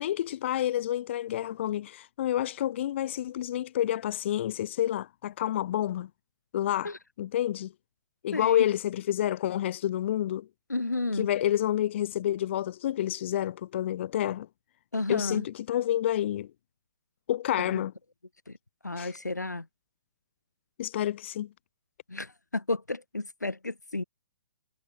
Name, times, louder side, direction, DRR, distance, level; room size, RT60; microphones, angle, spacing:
voice 1, 0.0-6.1 6.5-7.7 8.2-10.5 11.1-14.5 15.1-16.5 17.3-17.9 19.0-19.1 20.8-21.5, left 12 dB, 45° left, 0.5 m, -29 dB
voice 2, 8.3-8.7 10.7-11.3 14.9-15.5 17.6-17.8 18.5-18.6 18.8-19.7 22.1-24.0, left 2 dB, 90° left, 1.3 m, -32 dB
figure-of-eight pair, 130°, 9 cm